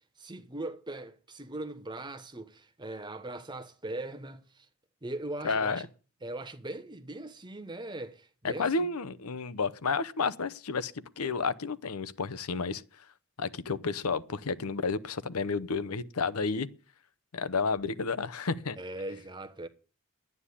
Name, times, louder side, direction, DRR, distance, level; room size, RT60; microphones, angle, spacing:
voice 1, 0.2-4.7 5.0-5.9 6.2-8.9 18.7-19.7, right 2 dB, 20° right, 1.1 m, -40 dB
voice 2, 5.4-5.9 8.4-12.8 13.4-16.7 17.3-18.8, left 4 dB, 85° left, 0.8 m, -31 dB
11.5 x 9.6 x 8.4 m
head